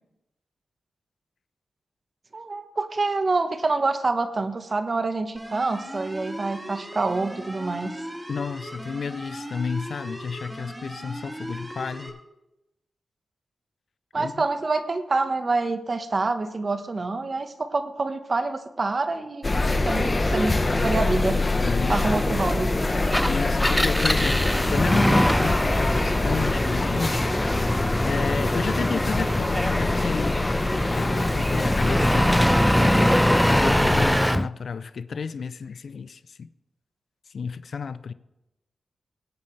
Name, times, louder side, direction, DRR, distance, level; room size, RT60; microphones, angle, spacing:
voice 1, 2.3-8.0 14.1-19.5 19.8-21.4 21.9-22.7, right 3 dB, 50° right, 1.2 m, -26 dB
sound 1, 5.3-12.1, equal, 15° right, 2.5 m, -38 dB
voice 2, 8.3-12.2 14.1-14.4 21.6-22.0 23.3-27.3 28.0-30.4 30.8-36.5 37.3-38.1, left 5 dB, 70° left, 0.4 m, -32 dB
sound 2, 19.4-34.2, left 2 dB, 35° left, 1.1 m, -24 dB
Engine, 23.0-34.5, equal, ahead, 0.4 m, -24 dB
21.0 x 8.4 x 3.3 m
cardioid pair, 50°, 0 cm